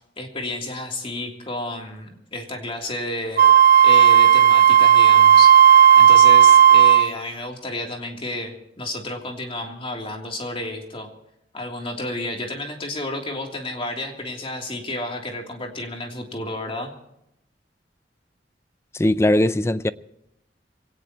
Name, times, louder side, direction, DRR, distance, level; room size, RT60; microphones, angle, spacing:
voice 1, 0.2-3.4 3.8-5.5 6.0-11.1 11.5-16.9, left 2 dB, 30° left, 3.1 m, -31 dB
Wind instrument woodwind instrument, 3.4-7.1, right 9 dB, 55° right, 0.6 m, -12 dB
voice 2, 18.9-19.9, left 1 dB, 15° left, 0.5 m, -19 dB
23.5 x 18.0 x 3.0 m
head